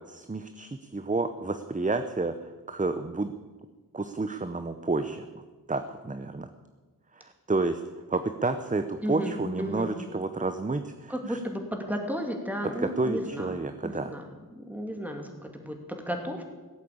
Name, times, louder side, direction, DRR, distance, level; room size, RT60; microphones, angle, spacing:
voice 1, 0.1-3.3 3.9-5.4 5.7-6.5 7.1-7.8 8.1-11.4 12.8-14.1, right 3 dB, 20° right, 9 dB, 0.7 m, -30 dB
voice 2, 9.0-9.9 11.1-13.5 13.8-14.2 14.5-16.4, equal, 5° right, 3 dB, 2.8 m, -33 dB
16.0 x 8.4 x 8.6 m, 1.3 s
wide cardioid pair, 55°, 37 cm